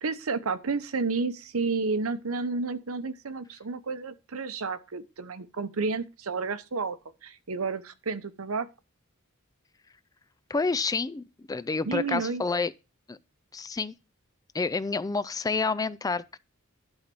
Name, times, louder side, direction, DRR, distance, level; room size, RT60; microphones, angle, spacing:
voice 1, 0.0-7.0 7.2-8.7 11.9-12.4, right 4 dB, 85° right, 0.8 m, -31 dB
voice 2, 10.5-12.7 13.1-13.2 13.5-13.9 14.5-16.4, left 4 dB, 15° left, 0.4 m, -29 dB
11.5 x 4.0 x 6.1 m
head